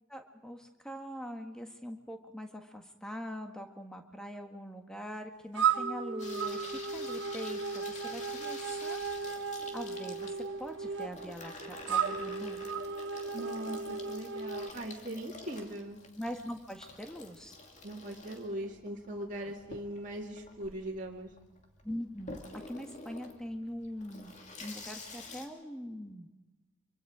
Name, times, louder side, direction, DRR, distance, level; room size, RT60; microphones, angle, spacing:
voice 1, 0.1-9.0 9.7-12.6 16.2-17.5 21.8-22.4 22.7-24.3 24.6-26.3, equal, 5° left, 4 dB, 1.6 m, -42 dB
sound 1, 5.5-14.7, right 6 dB, 60° right, 1.4 m, -35 dB
Water tap faucet / Sink (filling or washing), 6.2-25.4, left 3 dB, 35° left, 2.5 m, -49 dB
voice 2, 13.3-16.0 17.8-21.3, right 1 dB, 40° right, -2 dB, 2.3 m, -40 dB
24.5 x 24.5 x 5.0 m, 1.1 s
head